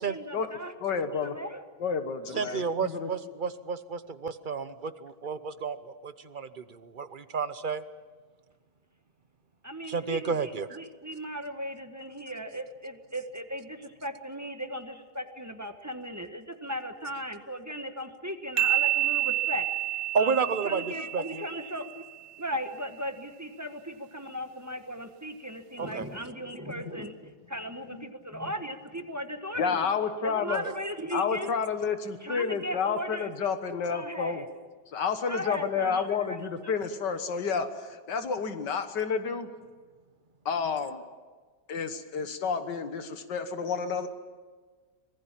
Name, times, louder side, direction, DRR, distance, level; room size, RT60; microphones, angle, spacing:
voice 1, 0.0-0.7 1.2-1.6 2.3-2.7 9.6-22.0 22.4-29.9 30.2-31.5 32.2-33.3 33.9-34.5 35.3-36.2, equal, 10° right, 7 dB, 1.0 m, -37 dB
voice 2, 0.8-1.4 1.8-3.3 29.6-30.6 31.1-34.4 34.9-39.5 40.5-41.0 41.7-44.1, left 6 dB, 85° left, 9 dB, 2.0 m, -30 dB
voice 3, 2.4-7.8 9.9-10.8 20.1-20.8 21.1-21.4 25.8-26.1 30.6-30.7, right 5 dB, 45° right, 12 dB, 0.7 m, -31 dB
sound 1, 18.6-22.1, right 14 dB, 80° right, 1.5 m, -29 dB
25.5 x 19.5 x 7.4 m, 1.4 s
omnidirectional pair, 1.8 m